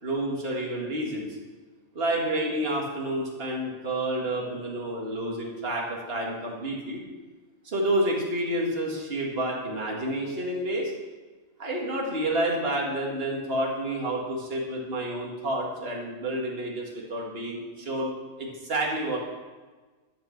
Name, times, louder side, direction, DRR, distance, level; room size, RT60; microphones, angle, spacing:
voice 1, 0.0-1.3 1.9-7.0 7.6-10.9 11.6-18.1 18.4-19.2, right 1 dB, 50° right, -2 dB, 2.3 m, -29 dB
12.0 x 8.2 x 5.9 m, 1.3 s
omnidirectional pair, 1.4 m